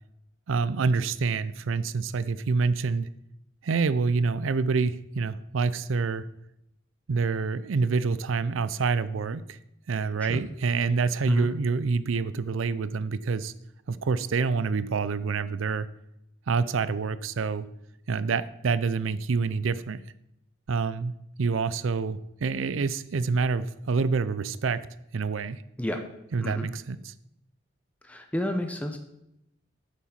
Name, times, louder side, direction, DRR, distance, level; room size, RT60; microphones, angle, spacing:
voice 1, 0.5-3.1 3.6-6.2 7.1-9.6 9.9-13.5 13.9-15.9 16.5-17.7 18.1-20.0 20.7-21.1 21.4-24.8 25.1-25.6 26.3-27.1, right 4 dB, 85° right, 16 dB, 0.5 m, -27 dB
voice 2, 28.0-29.0, left 1 dB, 5° left, 4 dB, 0.8 m, -30 dB
8.7 x 7.3 x 5.8 m, 0.81 s
head